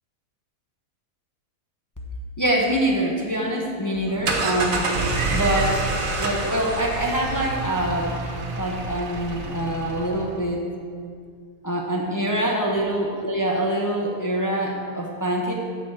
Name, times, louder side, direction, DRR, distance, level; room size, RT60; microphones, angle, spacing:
voice 1, 2.4-4.9 5.3-5.7 6.2-8.1 8.5-10.6 11.6-15.5, right 1 dB, 15° left, -2 dB, 0.9 m, -24 dB
sound 1, 3.9-10.3, right 3 dB, 65° right, 1.5 m, -27 dB
8.2 x 7.1 x 6.2 m, 2.1 s
omnidirectional pair, 1.5 m